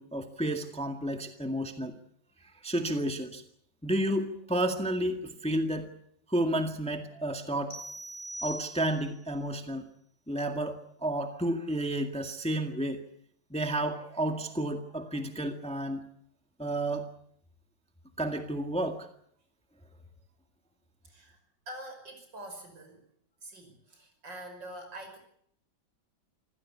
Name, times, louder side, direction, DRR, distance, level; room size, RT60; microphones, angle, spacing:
voice 1, 0.0-1.9 2.6-3.4 3.8-5.9 6.3-7.8 8.4-9.9 10.3-13.0 13.5-16.1 16.6-17.1 18.2-19.1, right 1 dB, 5° left, 5 dB, 1.7 m, -31 dB
sound 1, 7.7-9.2, right 1 dB, 25° left, 4.8 m, -41 dB
voice 2, 21.0-21.4 21.7-23.1 23.4-25.2, right 1 dB, 70° right, 5 dB, 6.4 m, -45 dB
26.0 x 15.5 x 8.5 m, 0.66 s
omnidirectional pair, 2.0 m